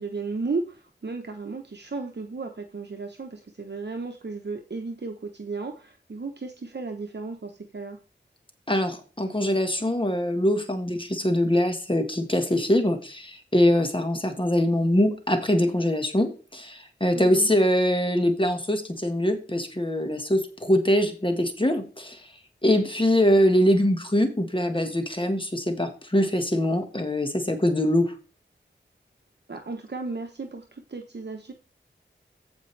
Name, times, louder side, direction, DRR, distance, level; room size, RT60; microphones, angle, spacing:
voice 1, 0.0-8.0 17.1-17.5 29.5-31.5, right 3 dB, 60° right, 4 dB, 1.1 m, -34 dB
voice 2, 8.7-22.2 22.6-28.1, left 1 dB, 25° left, 6 dB, 1.6 m, -23 dB
15.0 x 5.2 x 3.3 m, 0.35 s
wide cardioid pair, 70°, 20 cm